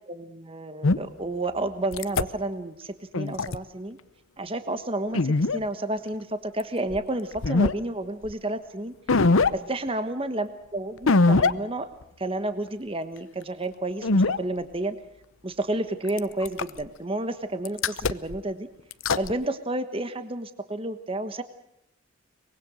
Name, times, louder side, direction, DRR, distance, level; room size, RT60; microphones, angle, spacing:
voice 1, 0.1-4.0 4.4-8.9 9.5-11.9 12.2-15.0 15.4-18.7 19.2-21.4, right 2 dB, 25° right, 10 dB, 1.3 m, -31 dB
sound 1, 0.8-1.0 1.9-2.2 3.1-3.6 5.1-5.6 6.9-7.0 7.4-7.7 8.3-8.4 9.1-9.5 11.1-11.5 12.0-12.1 14.0-14.4 16.1-16.8 17.6-18.4 18.9-19.3, left 3 dB, 70° left, 0.8 m, -21 dB
24.0 x 22.0 x 6.3 m, 0.81 s
head